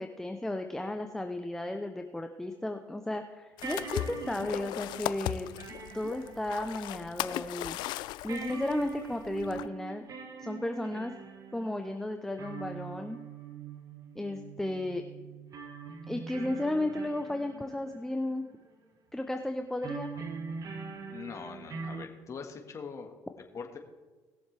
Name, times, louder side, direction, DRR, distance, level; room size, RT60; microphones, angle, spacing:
voice 1, 0.0-5.5 5.9-7.8 8.2-10.0 10.4-11.1 11.5-13.2 14.2-15.0 16.1-18.4 19.1-20.1, left 1 dB, 5° left, 6 dB, 0.7 m, -34 dB
sound 1, 2.7-2.8 3.6-7.4 7.7-7.8 8.3-18.8 19.8-22.1, right 5 dB, 50° right, 1.4 m, -43 dB
sound 2, 3.6-9.7, left 15 dB, 80° left, 0.4 m, -38 dB
voice 2, 21.1-23.8, left 5 dB, 40° left, 4 dB, 1.7 m, -43 dB
19.5 x 7.1 x 3.4 m, 1.3 s
cardioid pair, 90°, 8 cm